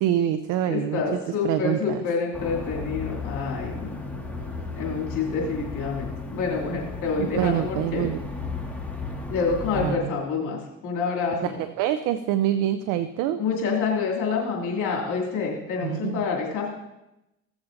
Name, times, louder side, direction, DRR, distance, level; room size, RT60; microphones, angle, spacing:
voice 1, 0.0-2.0 7.2-8.2 9.8-10.2 11.4-13.4 15.8-16.3, right 11 dB, 80° right, 10 dB, 0.5 m, -26 dB
voice 2, 0.7-3.9 4.8-8.1 9.3-11.5 13.4-16.7, left 5 dB, 75° left, -2 dB, 2.6 m, -27 dB
sound 1, 2.3-9.9, left 3 dB, 5° left, 1.8 m, -34 dB
15.5 x 7.2 x 2.6 m, 0.93 s
supercardioid pair, 70°, 31 cm